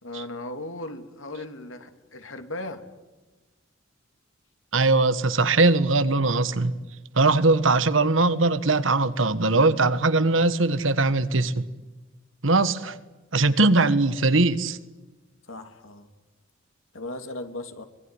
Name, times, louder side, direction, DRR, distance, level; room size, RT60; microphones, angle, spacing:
voice 1, 0.0-2.9 7.3-7.5 15.5-16.1 16.9-17.8, left 2 dB, 85° left, 2.7 m, -37 dB
voice 2, 4.7-6.7 7.1-11.6 12.4-13.0 13.3-14.8, right 3 dB, 75° right, 1.5 m, -21 dB
24.5 x 21.0 x 9.7 m
head